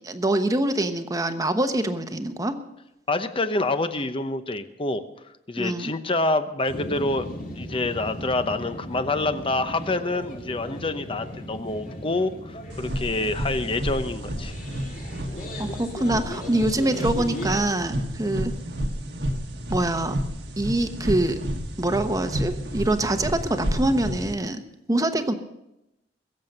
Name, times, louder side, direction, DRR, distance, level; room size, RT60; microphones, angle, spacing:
voice 1, 0.0-2.6 5.6-5.9 15.6-18.5 19.7-20.2 20.6-21.4 21.8-24.6 24.9-25.3, right 1 dB, 20° right, 8 dB, 1.0 m, -24 dB
voice 2, 3.1-5.0 5.5-7.3 7.5-14.5, left 2 dB, 30° left, 10 dB, 0.9 m, -27 dB
sound 1, 6.7-17.7, equal, 50° left, 2.7 m, -37 dB
sound 2, 12.7-24.3, equal, 75° right, 1.5 m, -31 dB
22.5 x 7.5 x 6.6 m, 0.88 s
head